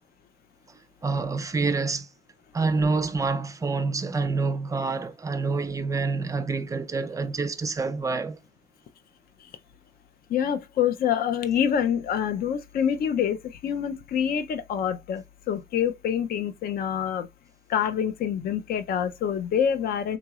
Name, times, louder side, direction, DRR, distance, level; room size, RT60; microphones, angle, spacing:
voice 1, 1.0-2.1 2.5-8.4, right 4 dB, 20° right, 0.4 m, -27 dB
voice 2, 10.3-13.4 13.6-17.3 17.7-20.2, left 8 dB, 60° left, 0.5 m, -26 dB
3.9 x 2.9 x 2.3 m
wide cardioid pair, 175°, 17 cm